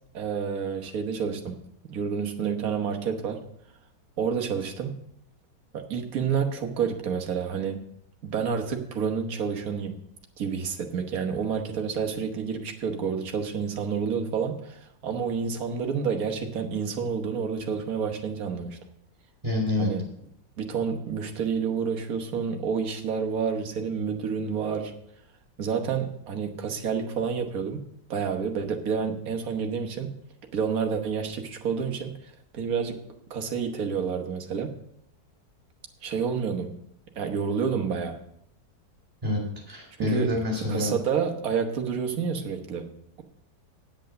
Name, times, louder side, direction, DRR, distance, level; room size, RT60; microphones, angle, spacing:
voice 1, 0.1-1.6 1.9-3.4 4.2-5.0 5.7-7.8 8.2-10.0 10.4-18.8 19.8-20.0 20.6-25.0 25.6-27.8 28.1-30.1 30.5-32.1 32.5-33.0 33.3-34.7 36.0-36.7 37.2-38.2 40.0-40.3 40.7-43.2, right 6 dB, 55° right, 4 dB, 1.6 m, -29 dB
voice 2, 19.4-19.9 39.2-39.4 39.7-40.9, left 2 dB, 20° right, -1 dB, 4.3 m, -27 dB
9.1 x 8.3 x 6.4 m, 0.71 s
omnidirectional pair, 2.0 m